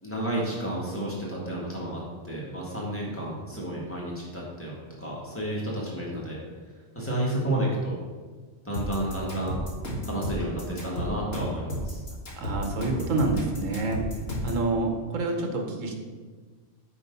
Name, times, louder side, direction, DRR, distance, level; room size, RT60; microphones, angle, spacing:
voice 1, 0.0-6.4 6.9-8.0 8.7-9.6 10.1-12.0, right 1 dB, 10° left, -5 dB, 1.8 m, -31 dB
sound 1, 8.7-14.6, equal, 85° left, 1.9 m, -32 dB
voice 2, 12.4-14.0 14.4-15.9, right 2 dB, 85° right, 3 dB, 1.4 m, -27 dB
8.5 x 3.5 x 5.3 m, 1.4 s
omnidirectional pair, 1.3 m